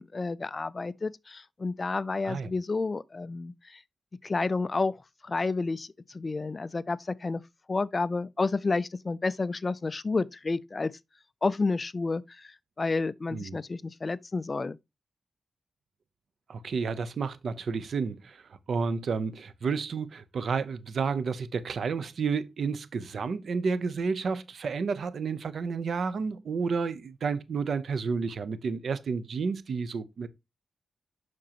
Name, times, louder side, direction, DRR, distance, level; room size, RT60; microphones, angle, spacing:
voice 1, 0.0-3.8 4.2-5.0 5.2-7.4 7.7-10.9 11.4-14.8, left 3 dB, 35° left, 0.3 m, -30 dB
voice 2, 16.5-18.4 18.7-30.3, right 5 dB, 70° right, 0.7 m, -31 dB
7.3 x 6.1 x 2.9 m
wide cardioid pair, 110°, 0 cm